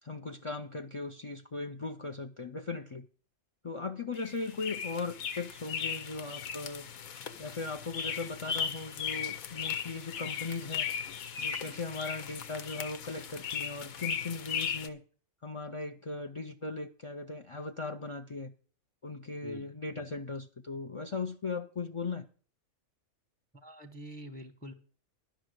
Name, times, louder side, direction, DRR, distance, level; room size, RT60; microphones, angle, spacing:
voice 1, 0.0-3.1 3.6-6.9 7.4-10.9 11.4-15.0 15.4-18.5 19.0-22.3, left 3 dB, 55° left, 0.3 m, -38 dB
sound 1, 4.2-14.9, left 7 dB, 75° left, 1.3 m, -37 dB
voice 2, 23.5-24.7, right 1 dB, 10° left, 0.8 m, -46 dB
11.5 x 6.1 x 7.8 m
omnidirectional pair, 1.5 m